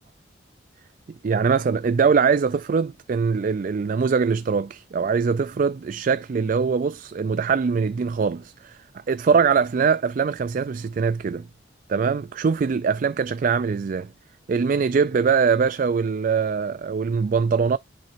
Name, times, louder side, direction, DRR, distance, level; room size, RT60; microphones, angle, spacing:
voice 1, 1.2-8.8 9.1-11.5 11.9-14.1 14.5-17.8, right 5 dB, 45° right, 0.3 m, -22 dB
10.5 x 4.1 x 2.6 m
head